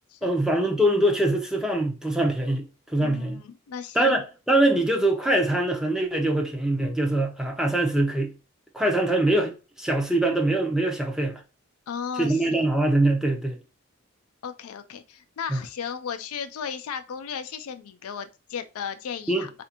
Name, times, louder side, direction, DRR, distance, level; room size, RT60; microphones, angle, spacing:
voice 1, 0.2-3.4 3.9-8.3 8.7-11.4 12.2-13.6 15.5-15.6 19.3-19.5, right 1 dB, 5° right, 0.6 m, -23 dB
voice 2, 3.0-4.2 11.9-12.6 14.4-19.5, left 7 dB, 80° left, 0.4 m, -35 dB
4.2 x 2.5 x 2.8 m
head